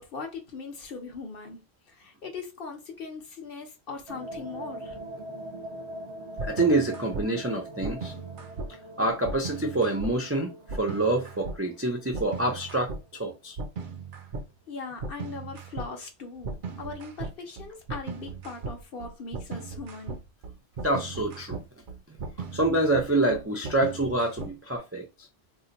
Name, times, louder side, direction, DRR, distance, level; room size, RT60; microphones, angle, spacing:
voice 1, 0.0-1.6 1.9-5.0 14.7-20.2, left 4 dB, 60° left, 1.0 m, -40 dB
sound 1, 4.1-13.5, right 1 dB, 75° right, 1.1 m, -43 dB
voice 2, 6.4-8.1 9.0-13.6 20.8-21.6 22.5-25.1, right 2 dB, 20° right, 0.3 m, -26 dB
sound 2, 6.4-7.2 7.8-8.7 9.3-10.1 10.7-11.6 12.1-13.0 13.6-14.5 15.0-15.9 16.4-24.8, right 4 dB, 55° right, 0.7 m, -37 dB
2.8 x 2.1 x 3.8 m
omnidirectional pair, 1.1 m